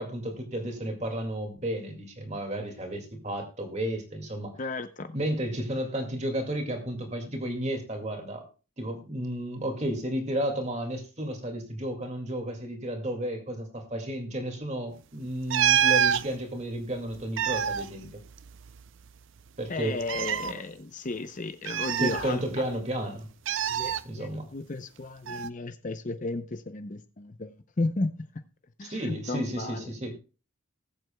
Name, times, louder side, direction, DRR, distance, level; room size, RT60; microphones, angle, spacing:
voice 1, 0.0-4.6 5.1-8.4 8.8-18.1 19.6-20.0 20.5-20.6 22.0-23.3 24.0-24.5 28.8-30.1, right 1 dB, 30° right, 4 dB, 2.1 m, -32 dB
voice 2, 4.6-5.1 19.7-22.4 23.7-28.1 28.8-29.9, left 2 dB, 35° left, 9 dB, 0.6 m, -34 dB
sound 1, 15.5-16.2 17.1-18.8 19.1-19.2 20.0-20.5 21.7-22.7 23.5-24.0 25.3-25.5, right 9 dB, 60° right, 0.5 m, -26 dB
19.5 x 7.9 x 2.2 m, 0.34 s
head